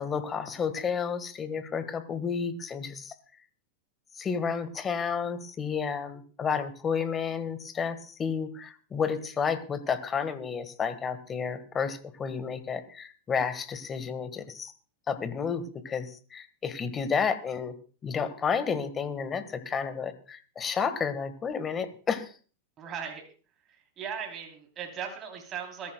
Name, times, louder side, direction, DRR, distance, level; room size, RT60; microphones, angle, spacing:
voice 1, 0.0-3.1 4.1-14.7 15.1-17.7 18.0-22.3, left 6 dB, 20° left, 10 dB, 1.5 m, -31 dB
voice 2, 22.8-23.2 23.7-25.9, right 7 dB, 30° right, 2 dB, 3.3 m, -38 dB
22.0 x 13.5 x 2.3 m, 0.39 s
supercardioid pair, 135°, 0 cm